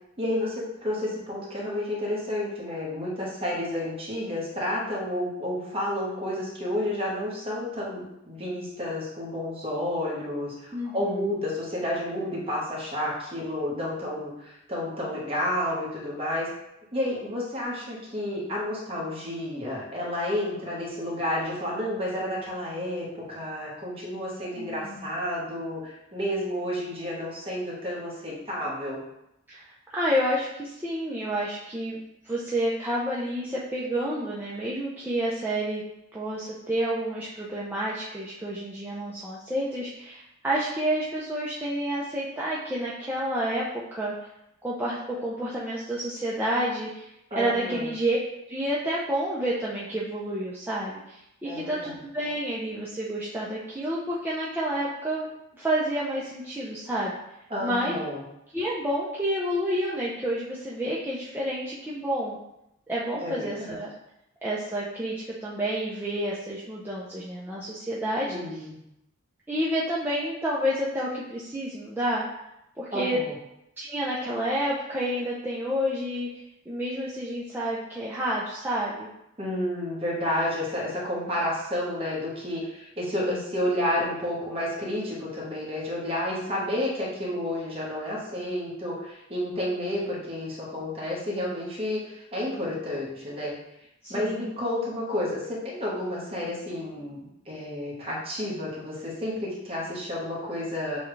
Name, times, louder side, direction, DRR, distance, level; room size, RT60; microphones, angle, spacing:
voice 1, 0.2-16.5 16.9-29.0 47.3-47.9 51.4-52.0 57.5-58.2 63.2-63.8 68.3-68.8 72.9-73.3 79.4-93.5 94.1-101.0, left 1 dB, 30° right, -5 dB, 1.2 m, -31 dB
voice 2, 10.7-11.2 24.6-25.1 29.5-35.8 36.1-43.6 43.9-44.1 44.6-48.2 48.5-55.3 55.5-57.1 57.6-58.0 58.5-62.4 62.9-63.9 64.4-68.6 69.5-72.2 72.8-73.2 73.8-76.3 76.7-79.1 94.0-94.5, equal, 10° right, -6 dB, 0.5 m, -29 dB
6.9 x 2.3 x 3.2 m, 0.85 s
head